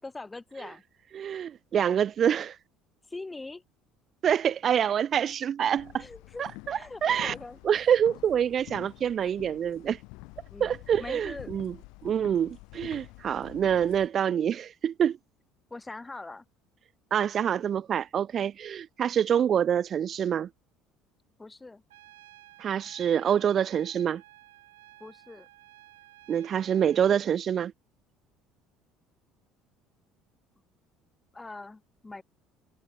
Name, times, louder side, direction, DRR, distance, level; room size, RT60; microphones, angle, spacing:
voice 1, 0.0-0.8 3.1-3.6 6.0-6.4 6.7-7.6 10.5-11.5 15.7-16.4 21.4-21.8 25.0-25.5 31.3-32.2, left 3 dB, 15° left, 5.8 m, -42 dB
voice 2, 1.1-2.6 4.2-6.0 6.4-7.3 7.6-10.0 10.6-11.7 12.0-15.2 17.1-20.5 22.6-24.2 26.3-27.7, right 9 dB, 40° right, 0.9 m, -26 dB
sound 1, 5.8-14.1, left 27 dB, 60° left, 6.3 m, -48 dB
Trumpet, 21.9-27.1, right 15 dB, 70° right, 3.3 m, -54 dB
figure-of-eight pair, 60°, 0 cm